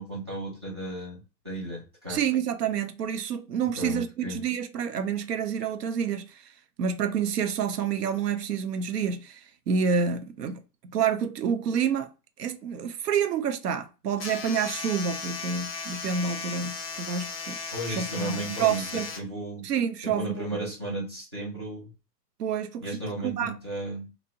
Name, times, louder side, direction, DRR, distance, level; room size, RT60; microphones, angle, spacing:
voice 1, 0.0-2.2 3.8-4.4 17.7-19.7 20.0-21.9 22.8-24.1, right 1 dB, 20° right, 0.4 m, -35 dB
voice 2, 2.1-6.5 6.8-12.1 12.4-17.6 17.9-19.1 19.6-20.5 22.4-23.0 23.2-23.5, right 7 dB, 75° right, 0.6 m, -28 dB
sound 1, 14.2-19.2, left 5 dB, 40° left, 0.5 m, -36 dB
2.7 x 2.1 x 2.6 m
hypercardioid pair, 135°, 49 cm